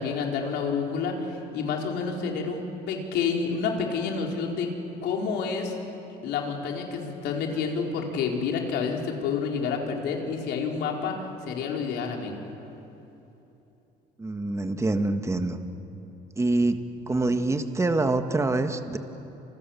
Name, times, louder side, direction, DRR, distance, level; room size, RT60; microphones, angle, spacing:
voice 1, 0.0-4.7 5.0-5.8 6.2-11.1 11.4-12.3, left 5 dB, 85° left, 1 dB, 4.3 m, -29 dB
voice 2, 14.2-15.6 16.4-16.8 17.1-19.0, right 2 dB, 15° right, 7 dB, 1.7 m, -25 dB
30.0 x 27.0 x 7.2 m, 3.0 s
cardioid pair, 110°, 17 cm